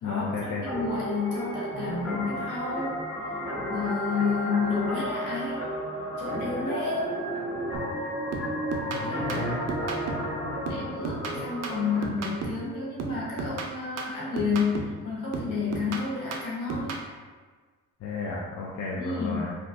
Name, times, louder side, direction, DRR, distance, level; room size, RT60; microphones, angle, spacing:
voice 1, 0.0-0.6 8.9-9.6 11.3-11.5 18.0-19.6, left 3 dB, 65° left, -4 dB, 0.5 m, -33 dB
voice 2, 0.6-3.0 3.7-5.6 6.2-7.2 9.0-9.6 10.6-16.9 18.9-19.5, left 4 dB, 85° left, -6 dB, 1.1 m, -30 dB
sound 1, 0.7-12.0, equal, 5° right, 1.2 m, -33 dB
sound 2, 7.7-8.0 8.3-10.4 10.7-12.7 13.0-15.0 15.3-17.1, right 4 dB, 60° right, 0.5 m, -35 dB
3.3 x 2.3 x 2.6 m, 1.4 s
cardioid pair, 90°, 30 cm